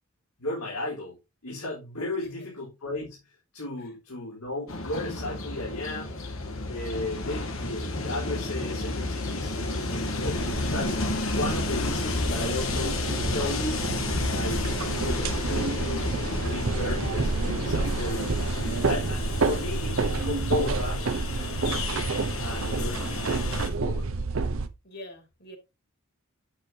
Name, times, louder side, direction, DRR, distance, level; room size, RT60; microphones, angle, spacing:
voice 1, 0.4-1.2 1.4-6.3 6.7-11.0 11.2-13.8 14.3-14.6 14.9-16.1 16.4-17.3 17.6-21.0 22.4-24.1, left 2 dB, 85° left, -5 dB, 3.7 m, -35 dB
voice 2, 2.2-2.5 24.8-25.6, left 1 dB, 45° left, 5 dB, 2.5 m, -45 dB
Train, 4.7-23.7, left 2 dB, 70° left, 1.9 m, -31 dB
sound 1, 10.3-24.7, right 3 dB, 65° right, 0.7 m, -29 dB
8.6 x 8.2 x 2.8 m, 0.25 s
head